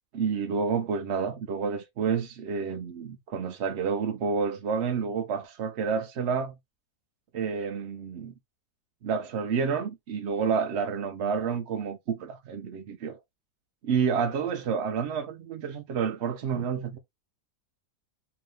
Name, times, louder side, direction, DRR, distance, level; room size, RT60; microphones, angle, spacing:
voice 1, 0.1-6.5 7.3-8.3 9.0-13.2 13.8-17.0, right 6 dB, 60° right, 0.7 m, -29 dB
3.5 x 2.9 x 3.1 m
omnidirectional pair, 1.7 m